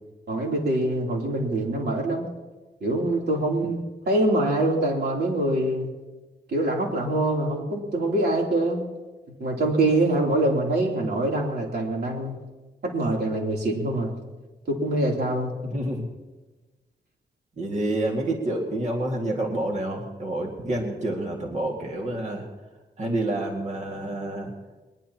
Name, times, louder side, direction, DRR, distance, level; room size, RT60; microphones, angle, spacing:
voice 1, 0.3-2.3 2.8-5.9 6.5-8.9 9.4-12.4 12.8-14.1 14.7-15.5, right 1 dB, 70° right, -1 dB, 3.4 m, -24 dB
voice 2, 15.6-16.0 17.6-22.5 23.0-24.5, right 1 dB, 40° right, 0 dB, 2.2 m, -28 dB
22.0 x 21.0 x 3.0 m, 1.2 s
wide cardioid pair, 170°, 18 cm